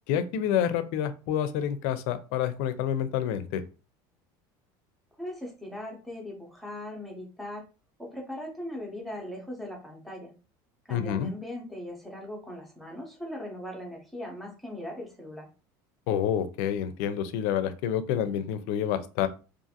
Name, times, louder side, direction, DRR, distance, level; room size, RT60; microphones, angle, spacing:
voice 1, 0.1-3.6 10.9-11.3 16.1-19.3, left 9 dB, 70° left, 11 dB, 0.4 m, -28 dB
voice 2, 5.2-7.6 8.0-10.3 10.8-15.5, left 1 dB, ahead, 0 dB, 0.6 m, -39 dB
2.5 x 2.4 x 2.7 m, 0.33 s
cardioid pair, 165°, 10 cm